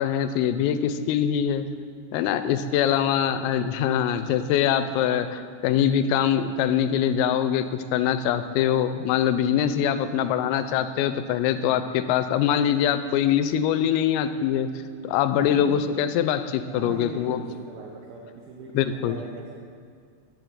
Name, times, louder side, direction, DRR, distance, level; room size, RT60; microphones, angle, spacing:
voice 1, 0.0-1.7 2.1-7.7 7.9-14.7 15.0-17.4 18.7-19.2, left 9 dB, 90° left, 11 dB, 3.4 m, -23 dB
voice 2, 3.0-3.4 15.5-15.6 16.7-19.5, right 5 dB, 65° right, -2 dB, 2.7 m, -40 dB
15.0 x 8.3 x 9.2 m, 2.2 s
omnidirectional pair, 5.9 m